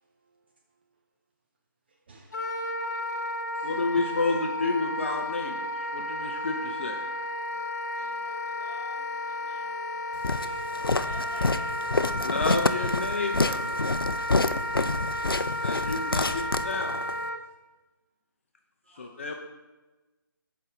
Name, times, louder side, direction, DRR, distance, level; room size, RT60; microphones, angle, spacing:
voice 1, 1.9-2.4 3.3-3.7 10.4-10.7 15.5-15.7 18.8-19.4, right 3 dB, 30° right, 2 dB, 0.5 m, -58 dB
Wind instrument woodwind instrument, 2.3-17.4, left 1 dB, 50° left, 0.9 m, -33 dB
voice 2, 3.6-7.0 12.2-13.6 15.6-17.0 18.9-19.4, left 3 dB, 35° left, 3 dB, 0.5 m, -30 dB
voice 3, 7.9-10.4 10.6-12.0, equal, ahead, -11 dB, 1.6 m, -51 dB
Walk footsteps, 10.2-17.2, left 3 dB, 85° left, 0.4 m, -28 dB
7.5 x 4.5 x 3.7 m, 1.2 s
figure-of-eight pair, 145°, 12 cm